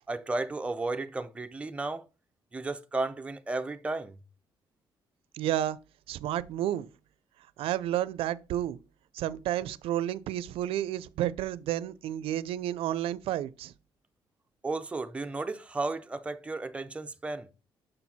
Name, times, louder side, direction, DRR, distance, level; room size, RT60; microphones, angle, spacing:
voice 1, 0.1-2.0 2.5-4.2 14.6-17.5, right 3 dB, 15° right, 0.5 m, -33 dB
voice 2, 5.3-5.8 6.1-6.9 7.6-8.8 9.1-13.7, right 12 dB, 85° right, 0.4 m, -31 dB
6.5 x 4.4 x 4.1 m
cardioid pair, 160°, 9 cm